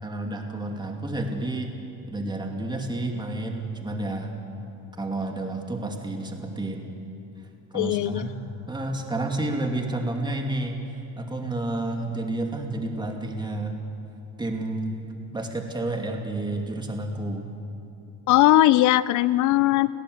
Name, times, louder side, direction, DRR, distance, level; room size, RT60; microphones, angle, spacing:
voice 1, 0.0-1.7 2.1-4.4 5.0-6.9 7.7-10.8 11.2-13.8 14.4-15.0 15.3-17.5, right 2 dB, 10° right, 3 dB, 2.4 m, -30 dB
voice 2, 7.7-8.3 18.3-19.9, left 15 dB, 50° left, 18 dB, 0.5 m, -19 dB
29.5 x 16.5 x 8.0 m, 2.8 s
cardioid pair, 145°, 38 cm